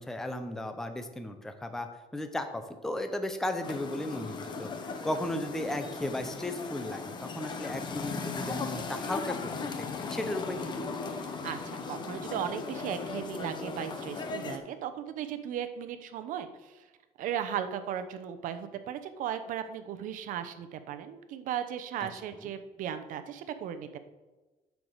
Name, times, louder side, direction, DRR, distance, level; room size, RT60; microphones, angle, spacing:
voice 1, 0.0-9.5 9.8-10.9, left 1 dB, 5° left, 7 dB, 0.6 m, -35 dB
sound 1, 3.6-14.6, left 4 dB, 30° left, 0.9 m, -37 dB
voice 2, 11.2-16.9 17.2-24.0, right 9 dB, 65° right, 9 dB, 0.8 m, -36 dB
9.5 x 4.7 x 6.6 m, 1.2 s
cardioid pair, 160°, 15 cm